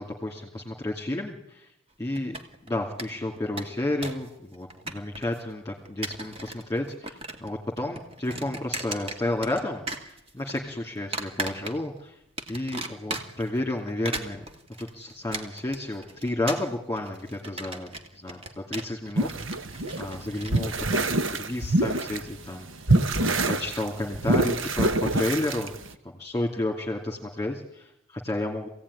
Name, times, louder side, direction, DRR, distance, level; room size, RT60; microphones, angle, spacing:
voice 1, 0.0-1.7 2.0-2.3 2.6-12.2 12.5-14.5 14.8-19.7 20.0-22.7 23.2-25.7 26.1-28.7, left 1 dB, 15° left, 0 dB, 2.6 m, -31 dB
Plastic Scratching Plastic, 2.2-2.7 3.0-3.1 3.4-4.3 4.5-5.4 5.9-6.6 6.9-7.5 7.8-9.6 9.9-10.6 11.1-12.0 12.4-13.5 13.9-20.6, right 2 dB, 30° right, 2.3 m, -36 dB
sound 1, 19.2-22.3 22.5-25.9, right 2 dB, 70° right, 1.4 m, -25 dB
25.5 x 17.0 x 9.9 m, 0.85 s
head